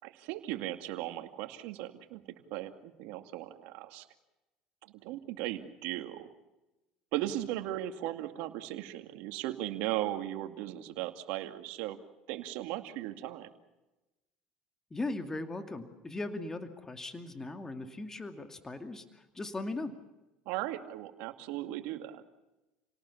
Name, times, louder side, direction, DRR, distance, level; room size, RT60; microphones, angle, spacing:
voice 1, 0.0-2.2 2.5-4.1 4.8-6.3 7.1-12.0 12.3-13.5 20.5-22.2, right 14 dB, 70° right, 7 dB, 2.3 m, -37 dB
voice 2, 14.9-19.9, left 2 dB, 20° left, 6 dB, 2.5 m, -38 dB
30.0 x 18.5 x 7.3 m, 1.0 s
supercardioid pair, 85°, 3 cm